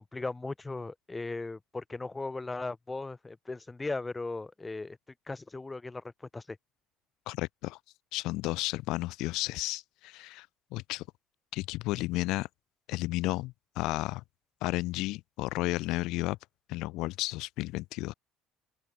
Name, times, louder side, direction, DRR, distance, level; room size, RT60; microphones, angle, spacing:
voice 1, 0.0-5.0 5.3-6.0 6.3-6.6, left 3 dB, 10° left, 1.6 m, -37 dB
voice 2, 7.3-7.8 8.1-10.5 10.7-11.0 11.5-12.5 12.9-14.2 14.6-16.4 16.7-18.1, left 20 dB, 70° left, 0.4 m, -32 dB
open air
cardioid pair, 170°, 0 cm